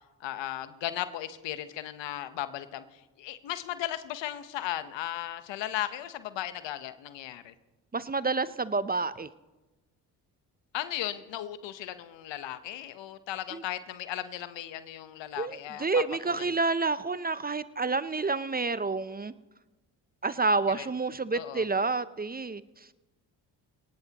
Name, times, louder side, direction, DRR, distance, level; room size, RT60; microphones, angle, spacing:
voice 1, 0.2-7.5 10.7-16.5 20.8-20.9 21.3-21.6, left 12 dB, 75° left, 11 dB, 1.1 m, -36 dB
voice 2, 7.9-9.3 13.5-13.6 15.4-19.3 20.2-22.6, right 3 dB, 20° right, 15 dB, 0.6 m, -29 dB
22.0 x 18.5 x 3.0 m, 1.1 s
supercardioid pair, 55°, 44 cm